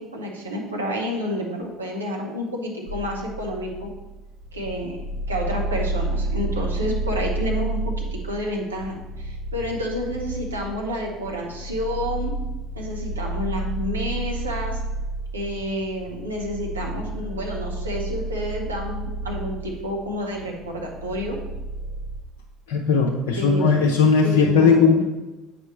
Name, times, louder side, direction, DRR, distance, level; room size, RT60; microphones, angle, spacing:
voice 1, 0.0-3.9 4.5-5.0 5.3-12.3 12.8-14.8 15.3-21.4 23.3-23.8 24.2-25.0, equal, 85° right, -1 dB, 1.1 m, -29 dB
sound 1, 2.9-22.2, right 2 dB, 60° right, 0.8 m, -31 dB
voice 2, 22.7-25.0, left 5 dB, 65° left, 0 dB, 0.6 m, -18 dB
7.9 x 5.2 x 3.1 m, 1.1 s
figure-of-eight pair, 60°, 0 cm